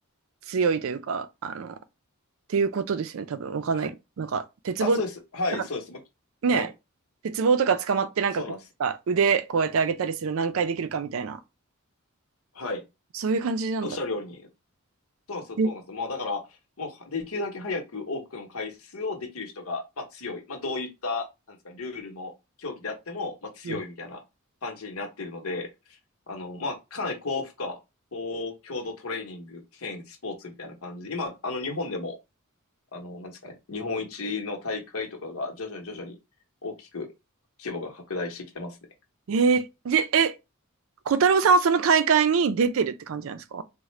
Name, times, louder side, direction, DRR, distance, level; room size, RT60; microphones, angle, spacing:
voice 1, 0.5-1.7 2.5-5.0 5.5-5.6 6.4-6.7 7.2-8.4 8.8-11.4 13.2-14.0 15.6-15.7 23.7-23.8 39.3-40.3 41.1-43.6, right 5 dB, 65° right, 0.4 m, -24 dB
voice 2, 4.8-6.0 6.5-6.7 8.4-8.6 12.5-12.8 13.8-14.4 15.3-22.3 22.6-24.2 24.6-26.0 26.3-27.8 28.1-32.2 32.9-36.2 36.6-37.1 37.6-38.8, left 3 dB, 75° left, 0.9 m, -34 dB
3.7 x 2.1 x 3.1 m
head